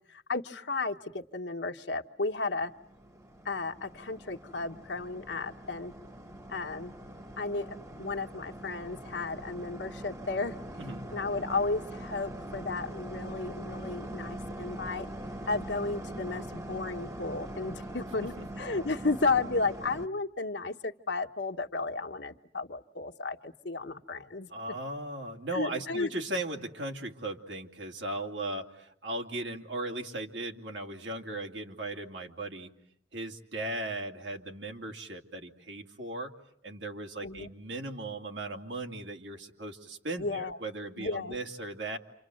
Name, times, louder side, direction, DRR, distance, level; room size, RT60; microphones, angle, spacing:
voice 1, 0.1-2.7 3.4-5.9 6.5-7.0 7.4-10.6 11.1-15.1 15.4-24.5 25.5-26.1 37.2-37.5 40.2-40.6 41.0-41.4, left 3 dB, 75° left, 4 dB, 1.2 m, -33 dB
sound 1, 2.5-20.1, right 1 dB, 20° right, 1.1 m, -42 dB
voice 2, 24.5-32.7 33.1-36.3 36.6-42.0, right 2 dB, 85° right, 3 dB, 2.7 m, -37 dB
28.5 x 27.0 x 7.8 m, 0.73 s
head